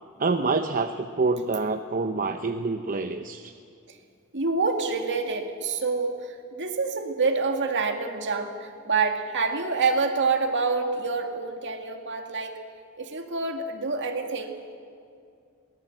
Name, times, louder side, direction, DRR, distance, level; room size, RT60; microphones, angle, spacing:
voice 1, 0.2-3.5, right 3 dB, 40° right, 7 dB, 0.7 m, -26 dB
voice 2, 4.3-12.6 13.0-14.5, right 4 dB, 60° right, 4 dB, 2.2 m, -27 dB
22.5 x 19.0 x 7.8 m, 2.4 s
head